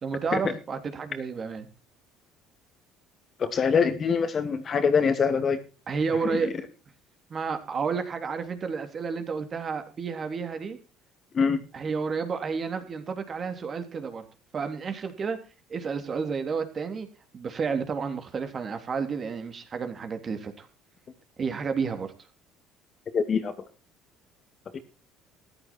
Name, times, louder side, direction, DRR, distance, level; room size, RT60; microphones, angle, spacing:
voice 1, 0.0-1.7 5.9-6.5 7.3-10.8 11.7-14.3 14.5-15.4 15.7-17.1 17.3-20.7 21.4-22.1, right 5 dB, 35° right, 7 dB, 3.2 m, -31 dB
voice 2, 3.4-5.6 6.2-6.4 11.3-11.6 23.1-23.5 24.7-24.8, left 6 dB, 35° left, 9 dB, 2.4 m, -24 dB
14.5 x 13.0 x 4.6 m, 0.33 s
cardioid pair, 115°, 0 cm